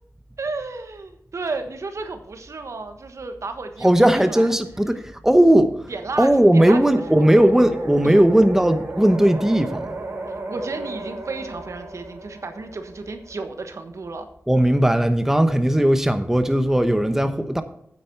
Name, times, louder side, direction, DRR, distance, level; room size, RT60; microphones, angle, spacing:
voice 1, 0.4-4.5 5.9-6.8 7.2-7.5 8.0-8.2 10.5-14.3, right 3 dB, 70° right, 1.3 m, -32 dB
voice 2, 3.8-5.9 6.2-9.9 14.5-17.6, right 1 dB, 10° right, 1.0 m, -17 dB
sound 1, 6.6-13.6, right 2 dB, 55° right, 4.7 m, -34 dB
9.1 x 8.5 x 4.6 m
cardioid pair, 50°, 5 cm